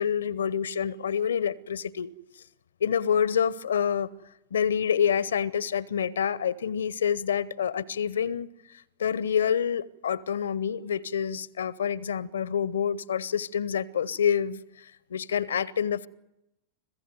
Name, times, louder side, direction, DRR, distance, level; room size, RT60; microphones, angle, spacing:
voice 1, 0.0-2.1 2.8-4.1 4.5-8.5 9.0-16.1, left 8 dB, 65° left, 0.7 m, -27 dB
26.0 x 16.0 x 9.4 m
figure-of-eight pair, 90°, 0 cm